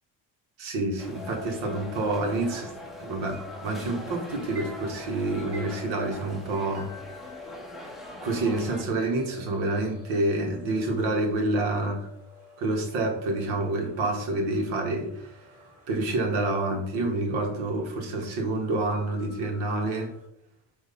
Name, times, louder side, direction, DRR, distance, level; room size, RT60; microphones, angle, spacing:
voice 1, 0.6-2.7 3.0-6.9 8.2-12.1 12.6-15.5 15.9-20.1, right 2 dB, 75° right, 1 dB, 1.8 m, -28 dB
sound 1, 1.0-8.8, left 1 dB, ahead, 0.5 m, -43 dB
sound 2, 1.1-20.3, left 3 dB, 35° right, 2.2 m, -48 dB
6.4 x 3.1 x 5.3 m, 0.76 s
cardioid pair, 170°, 46 cm